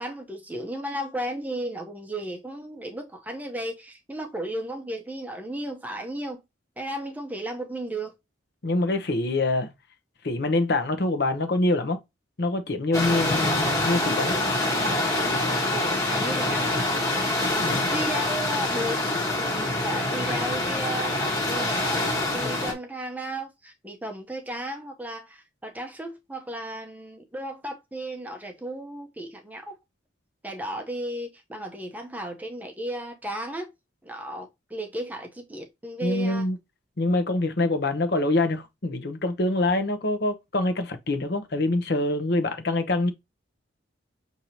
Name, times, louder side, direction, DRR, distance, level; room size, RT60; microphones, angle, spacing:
voice 1, 0.0-6.4 6.8-8.1 15.2-15.4 15.7-16.8 17.9-19.0 19.4-29.8 30.4-33.7 34.0-36.5, right 1 dB, 10° right, 0.7 m, -34 dB
voice 2, 8.6-9.7 10.2-12.0 12.4-14.4 17.6-18.0 36.0-36.6 37.0-43.1, left 2 dB, 55° left, 0.8 m, -25 dB
sound 1, 12.9-22.7, left 2 dB, 15° left, 1.3 m, -25 dB
6.4 x 2.7 x 2.9 m
head